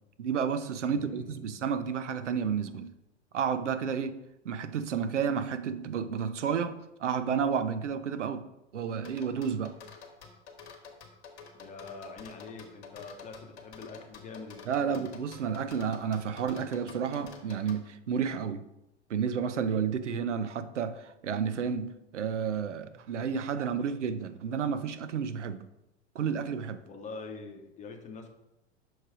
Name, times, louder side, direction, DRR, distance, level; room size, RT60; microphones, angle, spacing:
voice 1, 0.2-2.9 3.3-4.2 4.4-8.4 8.7-9.8 14.7-18.7 19.1-25.7 26.1-26.8, right 7 dB, 80° right, 12 dB, 0.6 m, -31 dB
voice 2, 0.8-1.6 11.5-15.1 26.9-28.3, left 4 dB, 20° left, 4 dB, 0.9 m, -45 dB
sound 1, 9.0-17.8, left 5 dB, 65° left, 1.2 m, -49 dB
6.3 x 3.1 x 4.8 m, 0.91 s
figure-of-eight pair, 90°, 35 cm